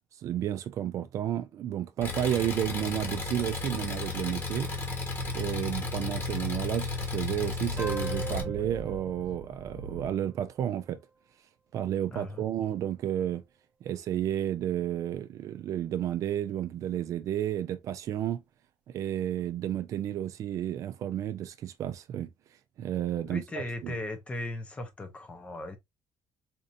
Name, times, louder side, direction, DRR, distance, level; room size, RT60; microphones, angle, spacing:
voice 1, 0.2-4.7 5.3-11.0 11.7-13.4 13.8-18.4 18.9-22.3 22.8-23.9, right 11 dB, 50° right, 0.4 m, -32 dB
Engine, 2.0-8.4, left 3 dB, 30° left, 1.1 m, -34 dB
Speech / Wind, 5.2-10.1, right 3 dB, 80° right, 0.8 m, -43 dB
sound 1, 7.8-10.9, right 3 dB, 15° right, 0.7 m, -41 dB
voice 2, 12.1-12.5 23.3-25.8, left 2 dB, 15° left, 0.7 m, -37 dB
4.4 x 2.6 x 2.5 m
cardioid pair, 170°, 7 cm